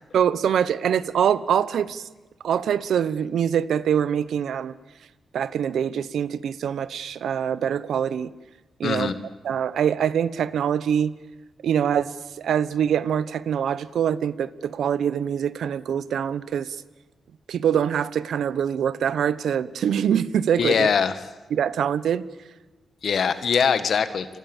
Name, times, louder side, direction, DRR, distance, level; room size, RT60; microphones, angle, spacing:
voice 1, 0.1-2.0 2.4-4.7 5.3-8.3 8.8-9.1 9.4-11.1 11.6-16.8 17.5-20.9 21.5-22.2, right 8 dB, 85° right, 16 dB, 0.9 m, -24 dB
voice 2, 8.8-9.1 20.6-21.2 23.0-24.3, left 6 dB, 65° left, 11 dB, 1.7 m, -22 dB
29.0 x 24.5 x 7.3 m, 1.2 s
cardioid pair, 100°, 0 cm